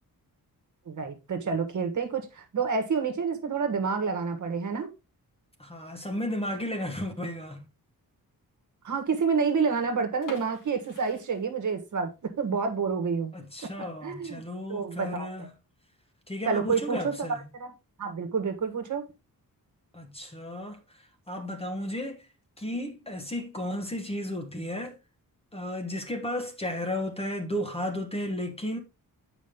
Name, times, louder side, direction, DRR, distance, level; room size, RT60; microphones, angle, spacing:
voice 1, 0.9-4.9 8.8-13.3 13.8-14.4 14.7-15.5 16.4-17.1 17.5-17.7 18.0-19.0, right 5 dB, 55° right, 1.4 m, -29 dB
voice 2, 5.6-7.6 13.3-15.5 16.3-17.4 19.9-20.8 21.3-22.2 22.6-25.0 25.5-28.8, left 1 dB, 15° left, 1.1 m, -33 dB
sound 1, 10.2-12.1 12.4-12.5 13.0-13.2 13.6-13.7 14.0-14.1 14.8-15.1, left 1 dB, 60° left, 2.5 m, -45 dB
8.4 x 5.1 x 3.6 m
wide cardioid pair, 180°, 36 cm